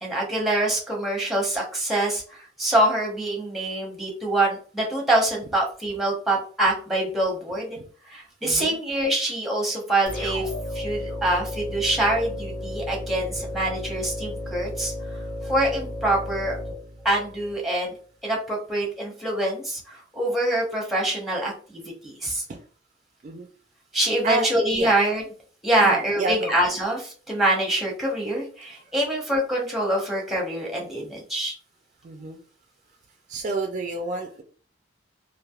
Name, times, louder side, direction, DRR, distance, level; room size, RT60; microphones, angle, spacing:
voice 1, 0.0-7.8 8.1-15.2 15.4-16.6 17.0-17.9 18.2-22.4 23.9-25.2 25.6-31.5, right 1 dB, ahead, -1 dB, 0.8 m, -25 dB
voice 2, 8.4-8.8 22.5-22.6 23.2-23.5 24.2-24.5 24.8-24.9 25.8-26.5 32.0-32.4 33.3-34.4, right 3 dB, 40° right, 4 dB, 0.3 m, -29 dB
sound 1, 10.1-17.6, left 1 dB, 80° left, 1.0 m, -33 dB
3.3 x 2.5 x 2.3 m, 0.42 s
head